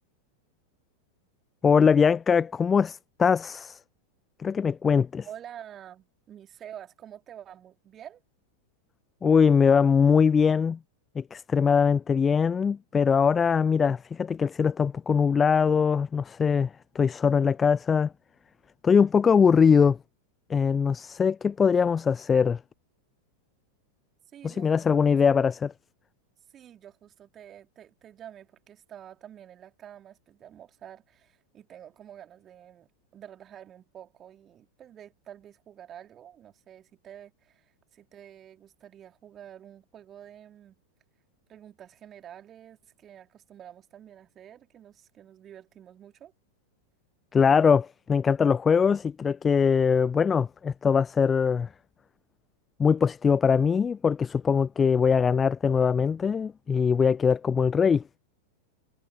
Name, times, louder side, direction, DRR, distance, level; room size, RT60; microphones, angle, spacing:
voice 1, 1.6-3.8 4.4-5.3 9.2-10.8 11.2-16.7 17.0-18.1 18.8-20.0 20.5-22.6 24.4-25.7 47.3-51.7 52.8-58.0, left 6 dB, 20° left, 0.3 m, -22 dB
voice 2, 5.2-8.2 24.3-25.5 26.5-40.8 41.5-46.3, right 10 dB, 25° right, 2.7 m, -48 dB
figure-of-eight pair, 90°, 0 cm